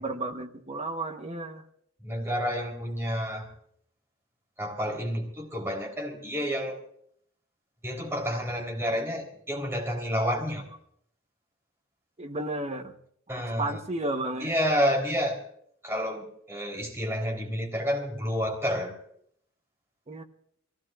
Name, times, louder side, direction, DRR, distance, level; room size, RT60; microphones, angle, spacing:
voice 1, 0.0-1.6 12.2-13.0 13.3-14.5 20.1-20.2, right 2 dB, 30° right, 5 dB, 1.1 m, -33 dB
voice 2, 2.0-3.5 4.6-6.8 7.8-10.7 13.3-13.8 14.4-15.4 15.8-19.0, equal, 10° right, -1 dB, 3.8 m, -29 dB
26.0 x 17.0 x 2.5 m, 0.67 s
head